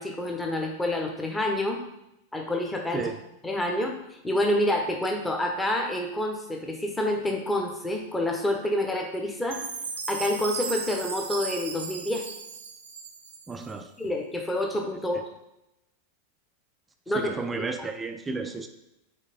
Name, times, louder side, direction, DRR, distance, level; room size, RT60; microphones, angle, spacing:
voice 1, 0.0-1.8 2.3-3.1 3.4-3.9 4.2-9.7 10.1-12.2 14.0-15.2 17.1-17.6, left 1 dB, 10° left, 2 dB, 1.0 m, -28 dB
Chime, 9.5-13.7, right 5 dB, 65° right, 0.8 m, -36 dB
voice 2, 13.5-13.9 17.1-18.7, right 3 dB, 15° right, 6 dB, 0.5 m, -33 dB
5.0 x 4.3 x 4.3 m, 0.88 s
figure-of-eight pair, 90°, 0 cm